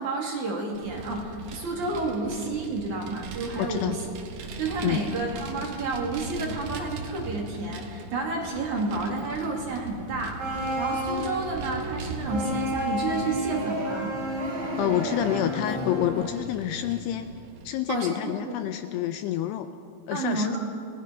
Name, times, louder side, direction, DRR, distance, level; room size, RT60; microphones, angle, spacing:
voice 1, 0.0-4.0 4.6-10.4 10.8-14.1 17.9-18.4 20.1-20.6, right 3 dB, 50° right, 0 dB, 3.1 m, -30 dB
Vehicle, 0.7-17.7, right 3 dB, 70° right, 3.7 m, -41 dB
voice 2, 3.6-4.0 4.8-5.0 14.8-17.3 17.6-19.7 20.1-20.6, left 12 dB, 80° left, 9 dB, 2.5 m, -28 dB
sound 1, 10.4-16.3, equal, 90° right, 8.5 m, -31 dB
28.5 x 19.0 x 5.7 m, 2.4 s
omnidirectional pair, 5.2 m